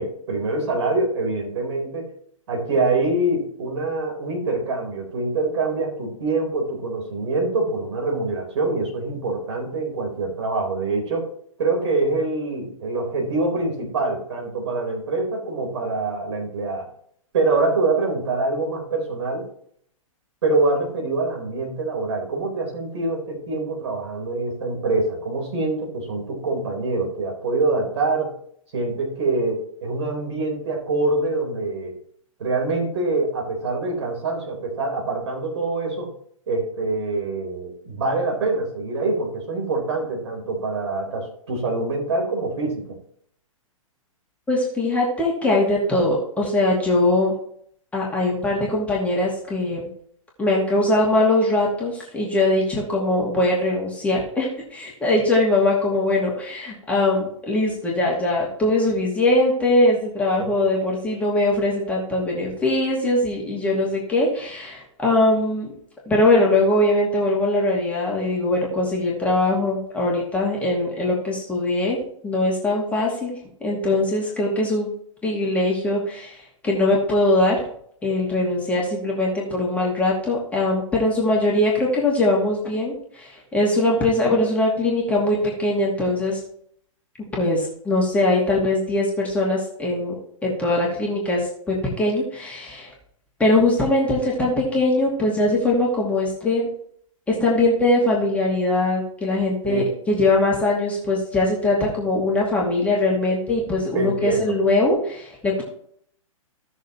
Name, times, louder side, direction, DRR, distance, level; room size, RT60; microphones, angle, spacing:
voice 1, 0.0-2.0 2.5-11.3 11.6-16.9 17.3-19.5 20.4-28.3 28.7-31.9 32.4-36.1 36.5-43.0 99.6-99.9 103.9-104.5, right 3 dB, 55° right, 0 dB, 4.1 m, -25 dB
voice 2, 44.5-47.3 47.9-49.8 50.4-65.7 66.1-72.0 72.2-74.9 75.2-77.6 78.0-86.4 87.3-90.1 90.4-91.4 91.7-92.9 93.4-96.7 97.3-105.6, left 2 dB, 10° left, -4 dB, 2.3 m, -21 dB
16.5 x 6.6 x 3.0 m, 0.65 s
figure-of-eight pair, 115°, 18 cm